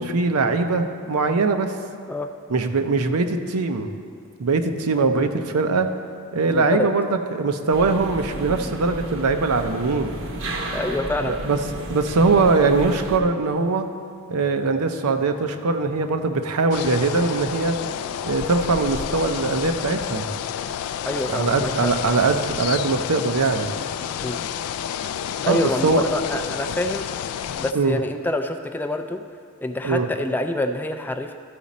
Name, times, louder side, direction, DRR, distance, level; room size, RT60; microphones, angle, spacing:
voice 1, 0.0-1.7 2.5-3.9 4.4-5.9 6.3-10.1 11.2-11.6 11.9-13.9 14.3-17.8 18.2-20.3 21.3-23.7 25.4-26.0 27.7-28.0 29.8-30.1, right 3 dB, 90° right, 6 dB, 0.6 m, -21 dB
voice 2, 6.5-6.9 10.7-11.4 21.0-21.9 24.2-24.4 25.4-27.1 27.6-29.2 29.6-31.4, left 1 dB, 10° left, 5 dB, 0.3 m, -26 dB
sound 1, 7.7-13.2, right 1 dB, 65° right, 0.8 m, -33 dB
sound 2, 16.7-27.7, left 9 dB, 90° left, 0.3 m, -30 dB
13.0 x 5.0 x 4.1 m, 2.2 s
head